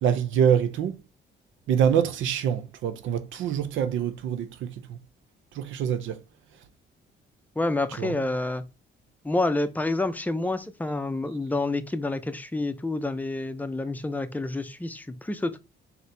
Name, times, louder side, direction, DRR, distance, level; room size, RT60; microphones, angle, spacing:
voice 1, 0.0-1.0 1.7-5.0 5.5-6.2 8.0-8.1, right 8 dB, 75° right, 0.5 m, -25 dB
voice 2, 7.6-8.6 9.2-15.6, left 2 dB, 10° left, 0.5 m, -28 dB
4.1 x 2.8 x 3.3 m
cardioid pair, 90°, 20 cm